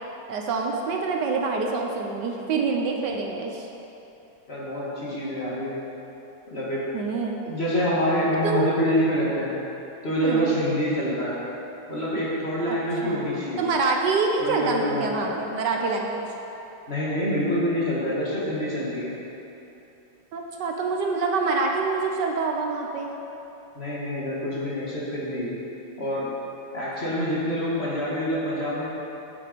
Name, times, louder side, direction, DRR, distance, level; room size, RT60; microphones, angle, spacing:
voice 1, 0.3-3.7 6.9-7.4 8.4-8.7 10.2-10.5 12.7-12.8 13.0-13.3 13.6-16.2 20.3-23.1, right 4 dB, 65° right, 1 dB, 1.3 m, -26 dB
voice 2, 4.5-5.8 6.5-6.8 7.4-9.5 10.0-11.4 11.9-13.7 14.4-15.3 16.9-19.1 23.8-25.5 26.0-26.3 26.7-28.9, equal, 30° left, -6 dB, 1.9 m, -26 dB
8.9 x 8.0 x 5.1 m, 3.0 s
omnidirectional pair, 2.2 m